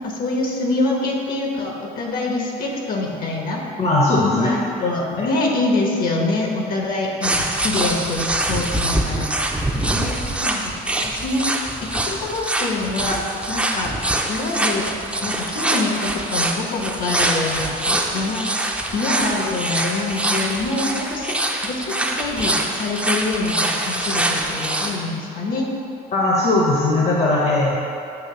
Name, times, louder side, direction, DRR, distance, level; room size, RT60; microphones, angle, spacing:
voice 1, 0.0-3.6 4.2-11.5 11.9-14.0 14.3-14.9 15.2-18.5 18.9-21.4 21.6-25.7, left 2 dB, 60° left, 0 dB, 1.2 m, -25 dB
voice 2, 3.8-4.6 5.2-5.3 26.1-27.8, left 2 dB, 40° left, -3 dB, 0.9 m, -18 dB
sound 1, 7.2-25.0, right 1 dB, 5° right, 0.5 m, -24 dB
8.2 x 3.0 x 5.6 m, 2.6 s
cardioid pair, 110°, 17 cm